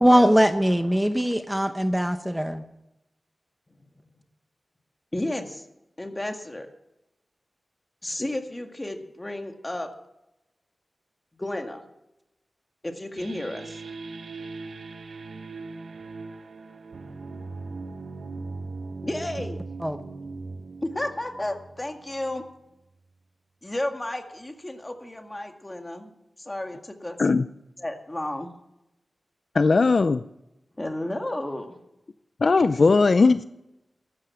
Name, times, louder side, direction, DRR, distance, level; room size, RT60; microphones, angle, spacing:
voice 1, 0.0-2.6 19.8-20.0, equal, 5° right, 8 dB, 0.9 m, -21 dB
voice 2, 5.1-5.7 6.0-6.7 8.0-9.9 11.4-11.8 12.8-13.8 19.0-19.6 20.8-22.4 23.6-26.1 26.4-27.2 27.8-28.5 30.8-31.8, left 1 dB, 20° left, 4 dB, 1.9 m, -32 dB
sound 1, 13.2-22.5, right 3 dB, 85° right, 1.1 m, -39 dB
voice 3, 29.5-30.2 32.4-33.4, left 4 dB, 55° left, 13 dB, 0.5 m, -18 dB
14.0 x 12.5 x 5.9 m, 0.88 s
wide cardioid pair, 115°, 0 cm